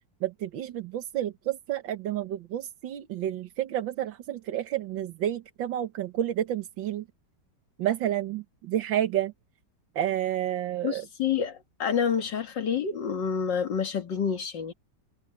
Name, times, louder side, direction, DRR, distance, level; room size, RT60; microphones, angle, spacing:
voice 1, 0.2-7.1 7.8-9.3 10.0-11.1, right 11 dB, 90° right, 1.8 m, -30 dB
voice 2, 10.8-14.7, left 7 dB, 75° left, 2.4 m, -28 dB
omnidirectional pair, 2.0 m